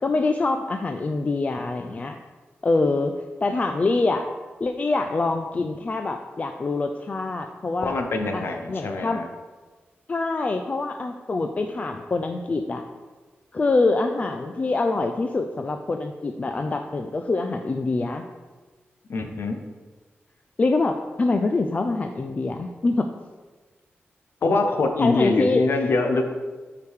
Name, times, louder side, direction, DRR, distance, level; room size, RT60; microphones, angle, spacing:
voice 1, 0.0-2.2 2.6-3.1 3.4-4.3 4.6-7.9 8.3-9.2 10.1-12.8 13.5-18.2 20.6-23.1 25.0-25.6, left 3 dB, 35° left, 5 dB, 0.4 m, -25 dB
voice 2, 7.8-9.3 19.1-19.6 24.4-26.3, left 3 dB, 70° left, 5 dB, 0.7 m, -24 dB
9.0 x 4.9 x 3.5 m, 1.3 s
wide cardioid pair, 115°, 4 cm